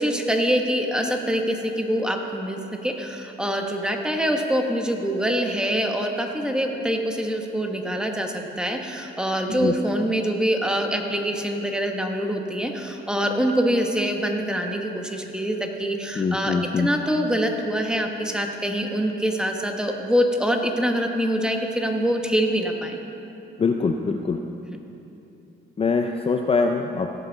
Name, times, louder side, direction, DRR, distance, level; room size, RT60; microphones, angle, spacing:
voice 1, 0.0-23.0, equal, 5° right, 3 dB, 1.2 m, -25 dB
voice 2, 16.2-16.9 23.6-24.4 25.8-27.1, left 4 dB, 30° left, 4 dB, 0.5 m, -23 dB
17.0 x 7.0 x 4.0 m, 2.8 s
cardioid pair, 90°, 20 cm